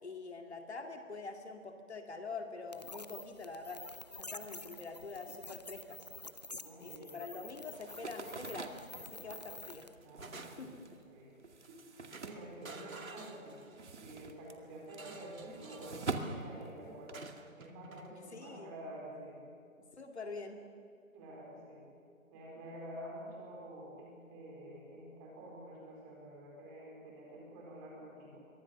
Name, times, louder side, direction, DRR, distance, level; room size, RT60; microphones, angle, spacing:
voice 1, 0.0-3.8 4.2-6.0 6.8-9.9 10.6-10.8 18.1-18.7 19.9-20.6, left 3 dB, 50° left, 4 dB, 2.3 m, -45 dB
sound 1, 2.7-10.0, left 2 dB, 30° left, 0.7 m, -49 dB
voice 2, 6.6-7.2 10.0-10.7 11.1-11.4 11.7-13.7 14.0-17.1 17.6-19.4 21.1-21.9 22.3-28.4, right 1 dB, 15° right, -3 dB, 4.4 m, -49 dB
sound 2, 7.7-13.2 13.5-17.4, right 3 dB, 55° right, 2.3 m, -45 dB
sound 3, 8.9-9.4 9.7-10.9 11.6-11.8 12.1-14.0 14.9-16.2 17.1-18.1, right 3 dB, 75° right, 2.4 m, -51 dB
29.5 x 23.5 x 7.1 m, 2.3 s
figure-of-eight pair, 165°, 41 cm